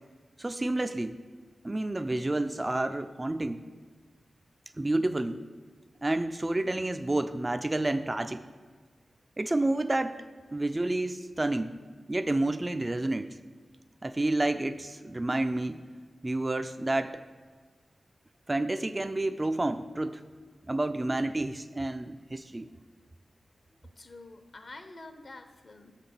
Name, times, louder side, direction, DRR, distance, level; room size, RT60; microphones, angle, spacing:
voice 1, 0.4-1.2 1.6-3.6 4.8-5.4 6.0-8.4 9.4-10.2 10.5-11.7 12.1-13.4 14.0-15.8 16.2-17.2 18.5-20.2 20.7-22.7, right 2 dB, 25° right, 9 dB, 0.3 m, -29 dB
voice 2, 23.8-26.0, left 2 dB, 50° left, 7 dB, 0.7 m, -48 dB
6.5 x 5.7 x 6.9 m, 1.5 s
wide cardioid pair, 105°, 0 cm